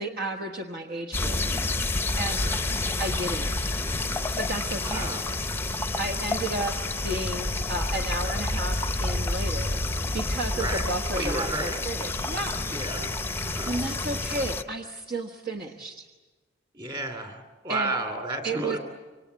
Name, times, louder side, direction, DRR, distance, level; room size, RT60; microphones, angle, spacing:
voice 1, 0.0-1.4 2.2-2.4 3.0-3.8 4.4-5.2 6.0-6.7 7.0-9.8 10.1-12.7 13.6-16.1 17.7-18.0 18.4-18.8, right 2 dB, 50° right, 4 dB, 1.3 m, -32 dB
sound 1, 1.1-14.6, left 2 dB, 10° left, 0.8 m, -29 dB
voice 2, 4.8-5.3 10.6-10.9 11.1-11.8 12.7-13.1 13.4-13.8 16.7-18.8, right 2 dB, 25° right, 5 dB, 3.0 m, -32 dB
26.5 x 24.5 x 8.3 m, 1.3 s
head